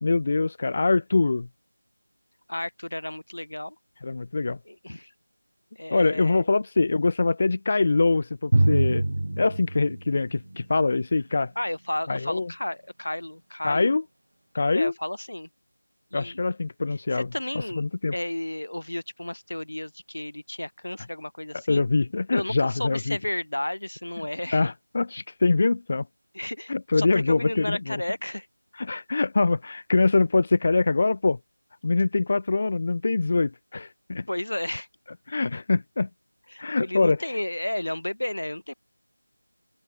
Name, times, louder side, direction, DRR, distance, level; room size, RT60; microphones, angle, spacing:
voice 1, 0.0-1.5 4.0-4.6 5.9-9.1 9.4-11.5 12.1-12.5 13.6-14.0 14.5-14.9 16.1-17.3 17.8-18.1 21.7-23.2 24.5-26.1 26.7-28.0 28.8-31.4 31.8-34.3 35.3-36.1 36.6-37.2, left 3 dB, 25° left, 2.1 m, -23 dB
voice 2, 2.5-3.8 4.6-5.1 5.7-6.5 11.6-14.0 14.7-15.5 16.1-16.4 17.1-17.8 18.1-21.8 22.3-24.7 26.3-28.5 34.3-34.9 36.5-38.7, left 1 dB, 75° left, 6.0 m, -32 dB
Drum, 8.5-10.9, right 1 dB, 55° right, 0.9 m, -25 dB
figure-of-eight pair, 180°, 0 cm